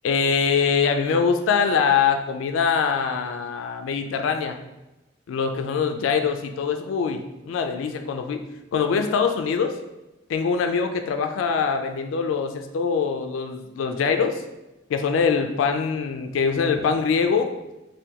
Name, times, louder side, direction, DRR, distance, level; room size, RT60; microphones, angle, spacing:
voice 1, 0.0-4.6 5.3-8.4 8.7-9.7 10.3-14.4 14.9-17.5, left 6 dB, 90° left, 6 dB, 0.3 m, -23 dB
2.7 x 2.2 x 3.5 m, 0.99 s
head